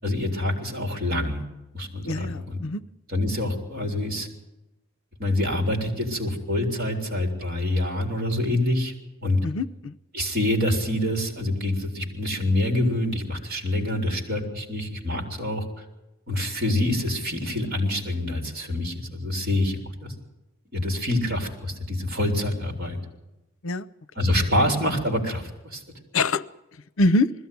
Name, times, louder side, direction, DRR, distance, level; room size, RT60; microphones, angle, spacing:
voice 1, 0.0-1.4 1.7-2.6 3.1-4.3 5.2-8.9 9.2-9.4 10.1-15.8 16.3-20.1 20.7-23.0 24.2-25.8, left 1 dB, 45° right, 2 dB, 3.9 m, -26 dB
voice 2, 2.0-2.8 9.4-10.0 23.6-23.9 26.1-26.4 27.0-27.3, left 2 dB, 85° left, 18 dB, 0.6 m, -24 dB
20.5 x 15.0 x 9.4 m, 0.96 s
head